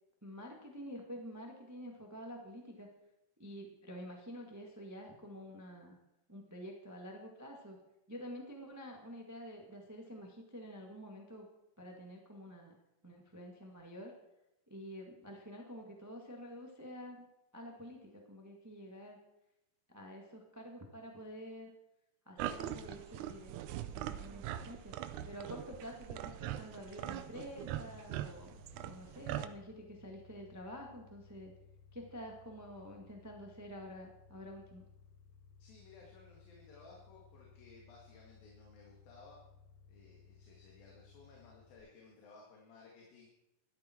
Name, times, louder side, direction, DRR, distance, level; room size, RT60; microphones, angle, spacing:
voice 1, 0.2-2.9 3.4-6.0 6.3-7.8 8.1-11.5 11.8-12.7 13.0-14.1 14.7-17.3 17.5-19.2 19.9-21.7 22.2-24.9 25.2-31.5 31.9-34.8, equal, 20° right, 1 dB, 0.5 m, -48 dB
sound 1, 22.4-29.5, right 12 dB, 75° right, 1.9 m, -42 dB
sound 2, 27.8-41.8, left 5 dB, 55° left, 4.9 m, -61 dB
voice 2, 35.6-39.4 39.9-43.3, left 4 dB, 90° left, -2 dB, 3.9 m, -58 dB
13.0 x 12.5 x 4.5 m, 0.90 s
omnidirectional pair, 4.0 m